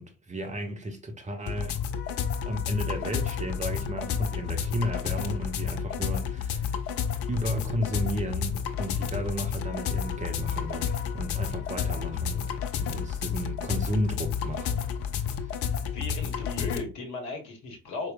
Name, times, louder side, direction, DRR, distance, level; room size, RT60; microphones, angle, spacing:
voice 1, 0.0-1.7 2.5-6.7 7.3-12.5 12.8-14.8 15.2-15.6, equal, 20° right, 0.6 m, -33 dB
sound 1, 1.5-16.8, left 7 dB, 40° left, 0.4 m, -31 dB
voice 2, 15.9-18.1, left 3 dB, 55° left, 1.0 m, -36 dB
4.3 x 2.0 x 2.4 m
figure-of-eight pair, 45°, 37 cm